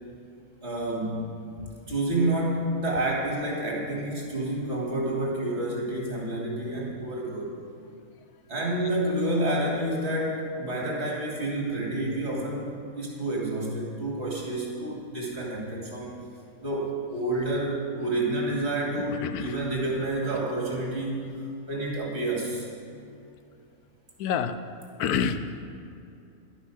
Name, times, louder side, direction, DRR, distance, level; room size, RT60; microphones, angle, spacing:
voice 1, 0.6-1.3 1.8-7.5 8.5-12.7 12.9-16.1 16.6-21.3 21.7-22.7, right 1 dB, 45° right, -3 dB, 2.8 m, -29 dB
voice 2, 19.0-19.6 23.0-23.2 24.2-24.6 25.0-25.6, left 7 dB, 90° left, 11 dB, 1.2 m, -29 dB
11.5 x 8.9 x 6.3 m, 2.6 s
omnidirectional pair, 1.6 m